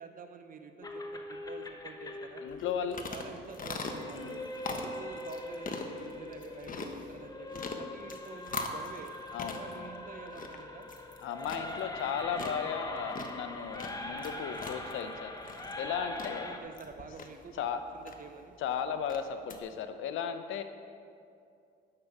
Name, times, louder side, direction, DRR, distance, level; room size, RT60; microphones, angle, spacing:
voice 1, 0.0-2.4 2.8-4.4 4.7-9.2 9.5-10.9 16.4-18.6, right 5 dB, 45° right, 8 dB, 0.9 m, -48 dB
sound 1, 0.8-16.6, left 2 dB, 20° left, 1.0 m, -42 dB
voice 2, 2.4-3.1 4.1-4.4 9.3-9.9 11.2-16.5 17.6-17.8 18.6-20.6, left 7 dB, 85° left, 9 dB, 0.8 m, -36 dB
sound 2, 2.5-19.6, left 3 dB, 45° left, 1.2 m, -43 dB
11.0 x 6.8 x 7.2 m, 2.5 s
cardioid pair, 90°, 20 cm